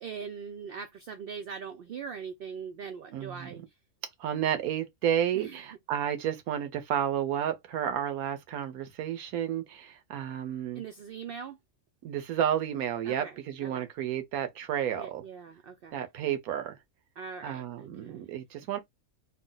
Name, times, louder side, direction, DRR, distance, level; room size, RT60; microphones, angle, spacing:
voice 1, 0.0-3.6 5.3-5.6 10.7-11.6 13.0-13.9 15.0-16.0 17.2-18.4, right 6 dB, 70° right, 0.5 m, -41 dB
voice 2, 3.1-3.5 4.2-10.8 12.0-15.2 15.9-16.8 17.4-18.8, right 10 dB, 90° right, 1.2 m, -31 dB
3.2 x 2.2 x 3.8 m
omnidirectional pair, 1.5 m